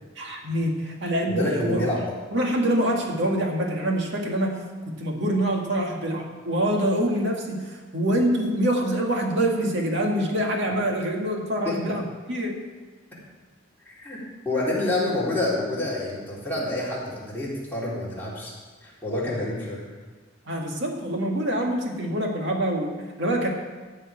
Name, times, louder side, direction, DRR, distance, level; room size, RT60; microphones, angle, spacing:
voice 1, 0.2-1.9 2.3-4.6 5.0-12.6 20.5-23.5, right 1 dB, 60° right, 0 dB, 2.1 m, -25 dB
voice 2, 1.3-2.1 11.6-11.8 13.9-14.2 14.5-18.5 18.8-19.9, left 2 dB, 10° left, -7 dB, 3.8 m, -28 dB
14.0 x 5.6 x 8.5 m, 1.3 s
head